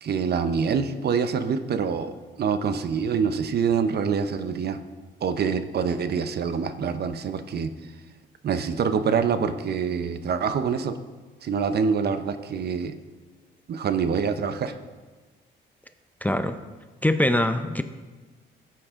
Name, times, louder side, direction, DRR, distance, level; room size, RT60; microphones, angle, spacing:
voice 1, 0.0-4.8 5.2-7.7 8.4-11.0 11.4-12.9 13.7-14.7, right 6 dB, 55° right, 10 dB, 0.7 m, -25 dB
voice 2, 16.2-16.6 17.0-17.8, left 1 dB, 10° left, 9 dB, 0.5 m, -23 dB
14.0 x 7.7 x 3.6 m, 1.3 s
cardioid pair, 90°, 20 cm